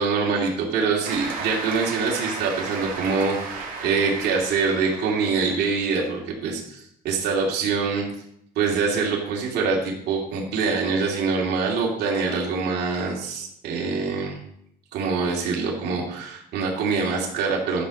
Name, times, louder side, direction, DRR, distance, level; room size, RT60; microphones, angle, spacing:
voice 1, 0.0-8.0 8.5-14.4 14.9-17.8, right 4 dB, 75° right, -2 dB, 3.0 m, -24 dB
Cheering / Applause, 1.0-6.0, right 4 dB, 55° right, 3.4 m, -34 dB
12.5 x 6.5 x 5.5 m, 0.72 s
cardioid pair, 110°, 17 cm